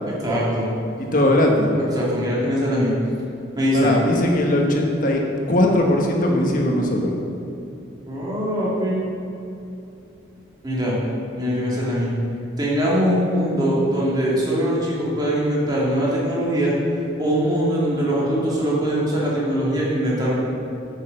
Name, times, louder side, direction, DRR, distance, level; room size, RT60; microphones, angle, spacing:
voice 1, 0.2-0.7 1.8-2.9 3.6-4.0 8.1-9.0 10.6-10.9 11.4-12.1 12.6-16.7 17.2-20.3, equal, 20° right, -6 dB, 2.2 m, -22 dB
voice 2, 1.1-1.7 3.7-7.2, left 1 dB, 45° left, 0 dB, 1.2 m, -19 dB
9.3 x 6.7 x 6.3 m, 2.8 s
head